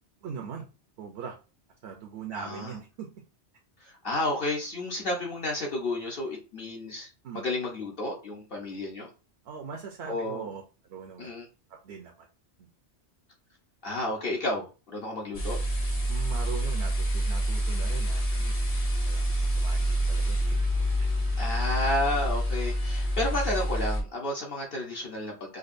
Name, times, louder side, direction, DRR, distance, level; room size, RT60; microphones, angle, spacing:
voice 1, 0.2-0.7 1.0-1.3 1.8-3.1 7.2-7.5 9.4-10.6 10.9-11.3 11.8-12.3 12.6-12.7 16.1-18.5 19.1-19.2 19.5-20.6 21.0-21.1, right 6 dB, 70° right, 2 dB, 0.9 m, -40 dB
voice 2, 2.3-2.7 3.8-7.1 7.3-9.1 10.1-10.5 11.2-11.5 13.8-15.6 21.4-25.6, left 1 dB, 55° left, -1 dB, 1.1 m, -31 dB
sound 1, 15.3-24.0, equal, 35° left, 0.8 m, -27 dB
5.1 x 2.3 x 2.6 m, 0.32 s
omnidirectional pair, 1.2 m